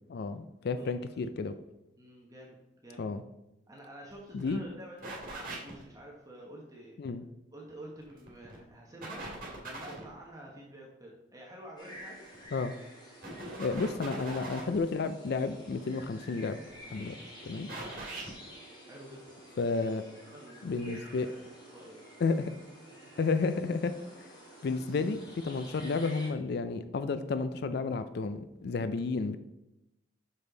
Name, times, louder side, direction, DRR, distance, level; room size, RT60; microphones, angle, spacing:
voice 1, 0.1-1.5 3.0-3.2 4.3-4.6 7.0-7.2 12.5-12.7 13.6-16.6 16.9-17.2 17.4-17.7 19.6-20.0 20.6-21.3 22.2-22.5 23.2-23.9 24.2-24.3 24.6-29.4, left 4 dB, 55° left, 11 dB, 0.4 m, -31 dB
voice 2, 0.7-1.0 2.0-3.1 3.7-7.0 7.5-9.3 9.6-12.2 18.8-19.2 19.8-19.9 20.3-22.4 23.0-23.2, right 1 dB, 20° right, -2 dB, 1.0 m, -49 dB
sound 1, 4.1-4.2 4.4-4.5 5.0-5.8 8.0-8.6 9.0-10.1 12.3-12.6 13.2-14.8 16.5-17.0 17.7-18.3, right 2 dB, 45° right, 2.1 m, -41 dB
sound 2, 11.8-26.3, equal, 20° left, 1.6 m, -51 dB
6.3 x 5.3 x 3.9 m, 0.91 s
head